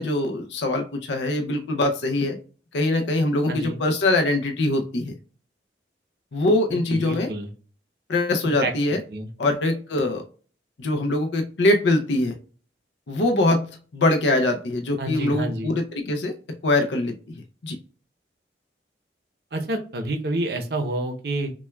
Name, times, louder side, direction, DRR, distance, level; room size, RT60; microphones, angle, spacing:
voice 1, 0.0-2.4 2.7-5.1 6.3-7.3 8.1-9.0 9.4-10.2 10.8-12.4 13.1-16.3 16.6-17.8, left 2 dB, 90° left, 4 dB, 0.5 m, -23 dB
voice 2, 3.5-3.8 6.7-7.5 8.6-8.7 9.1-9.3 15.0-15.8 19.5-21.5, right 1 dB, 60° right, 4 dB, 0.7 m, -28 dB
6.0 x 2.3 x 2.2 m, 0.40 s
head